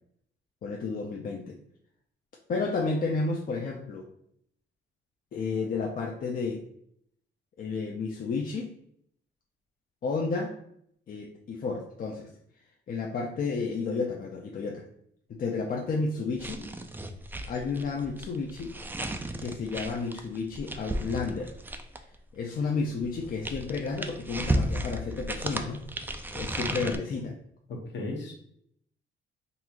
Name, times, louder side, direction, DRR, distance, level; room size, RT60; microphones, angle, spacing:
voice 1, 0.6-1.6 2.5-4.1 5.3-6.6 7.6-8.7 10.0-10.6 11.1-12.3 12.9-14.8 15.3-16.6 17.5-18.8 19.4-21.5 22.3-25.8 26.3-27.3, left 4 dB, 45° left, 0 dB, 0.5 m, -31 dB
sound 1, 16.4-22.1 23.0-27.0, right 1 dB, 10° right, 0.3 m, -34 dB
voice 2, 27.7-28.3, left 2 dB, 65° left, 0 dB, 1.1 m, -35 dB
3.9 x 2.4 x 2.9 m, 0.70 s
cardioid pair, 90°, 20 cm